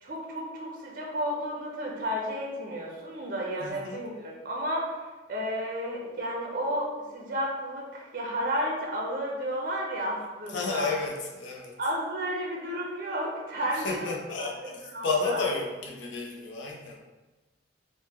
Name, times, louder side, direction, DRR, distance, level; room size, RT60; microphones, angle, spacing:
voice 1, 0.0-10.9 11.8-14.1 14.4-14.5 14.9-15.4, equal, 50° right, -2 dB, 0.5 m, -32 dB
voice 2, 3.6-4.0 10.5-11.8 13.7-17.0, left 4 dB, 85° left, -1 dB, 0.5 m, -32 dB
3.5 x 2.0 x 2.8 m, 1.2 s
head